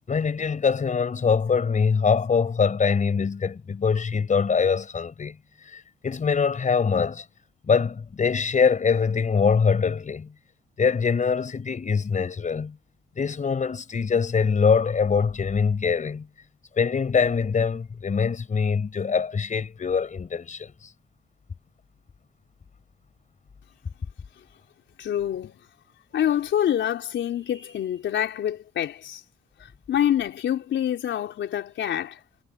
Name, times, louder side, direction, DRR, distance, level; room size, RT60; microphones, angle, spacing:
voice 1, 0.1-5.4 5.6-7.2 7.7-10.3 10.8-12.8 13.2-16.3 16.8-20.9, left 5 dB, 40° left, 5.3 m, -23 dB
voice 2, 25.0-25.6 26.1-29.2 29.9-32.2, left 10 dB, 70° left, 4.2 m, -26 dB
cardioid pair, 90°, 20 cm